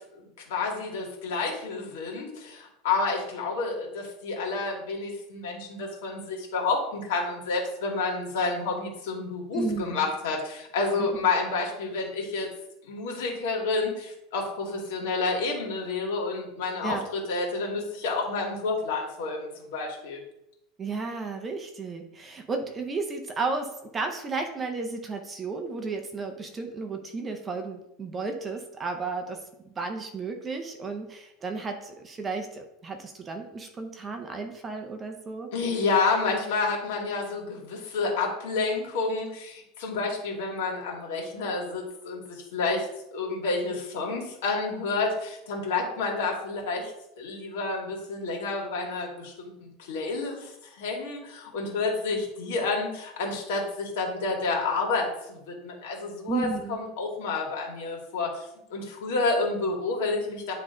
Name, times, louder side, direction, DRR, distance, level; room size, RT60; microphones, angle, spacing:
voice 1, 0.5-12.5 12.8-20.2 35.5-42.9 43.1-46.9 47.2-49.3 49.6-58.5 58.7-60.5, left 3 dB, 70° left, -1 dB, 2.3 m, -29 dB
voice 2, 9.5-10.1 11.0-11.1 16.8-17.1 20.8-35.5 56.3-56.8, right 4 dB, 15° right, 5 dB, 0.6 m, -33 dB
9.9 x 3.7 x 3.8 m, 0.83 s
supercardioid pair, 175°, 0 cm